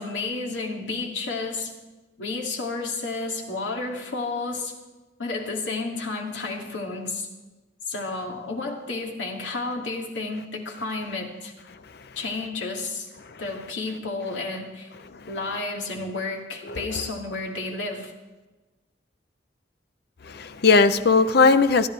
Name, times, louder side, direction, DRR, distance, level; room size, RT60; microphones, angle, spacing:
voice 1, 0.0-1.7 2.2-4.7 5.2-7.3 7.9-11.5 12.2-13.1 13.4-14.9 15.3-18.1, left 3 dB, 80° left, 0 dB, 2.4 m, -31 dB
voice 2, 20.2-21.9, left 4 dB, 60° left, 12 dB, 0.6 m, -19 dB
28.5 x 10.5 x 3.3 m, 1.2 s
head